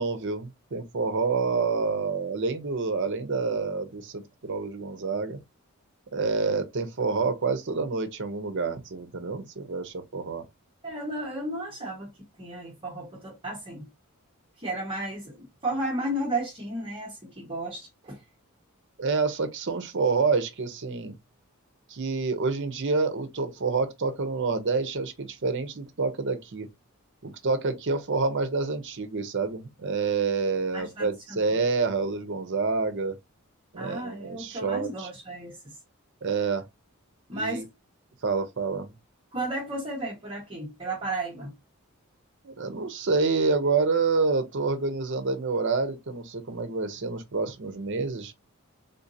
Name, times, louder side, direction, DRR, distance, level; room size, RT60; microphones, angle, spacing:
voice 1, 0.0-5.4 6.1-10.5 19.0-21.1 21.9-26.7 27.2-33.2 33.7-35.1 36.2-36.6 37.3-37.7 38.2-38.9 42.4-48.3, right 4 dB, 55° right, 0.7 m, -28 dB
voice 2, 10.8-12.1 12.4-13.9 14.6-18.2 30.7-31.6 33.8-35.7 37.3-37.7 39.3-41.5, right 1 dB, 25° right, 1.0 m, -33 dB
3.7 x 2.6 x 2.6 m
head